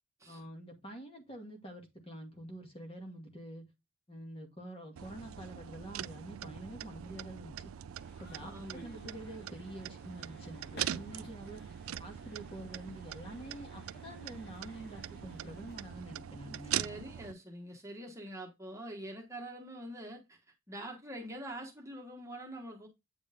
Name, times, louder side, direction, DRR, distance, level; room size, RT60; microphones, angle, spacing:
voice 1, 0.3-3.6 4.1-7.7 8.2-11.6 12.0-16.8, right 1 dB, 25° left, 2.1 m, -47 dB
sound 1, 5.0-17.3, right 10 dB, 90° right, 0.4 m, -42 dB
sound 2, 8.0-16.0, left 2 dB, 50° left, 2.1 m, -58 dB
voice 2, 8.4-9.0 11.1-11.3 16.7-20.4 20.7-22.9, right 1 dB, 15° right, 1.5 m, -45 dB
8.8 x 5.1 x 3.5 m
head